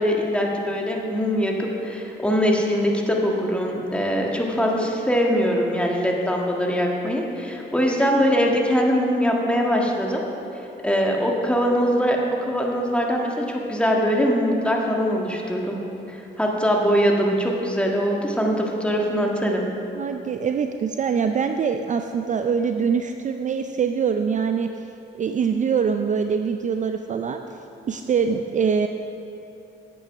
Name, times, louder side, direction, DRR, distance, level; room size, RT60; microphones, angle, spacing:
voice 1, 0.0-10.2 10.8-15.8 16.1-19.7, equal, 5° left, -1 dB, 1.6 m, -22 dB
voice 2, 19.9-24.7 25.2-27.4 27.9-28.9, right 6 dB, 40° right, 7 dB, 0.4 m, -23 dB
8.8 x 8.7 x 5.9 m, 2.8 s
cardioid pair, 90°, 20 cm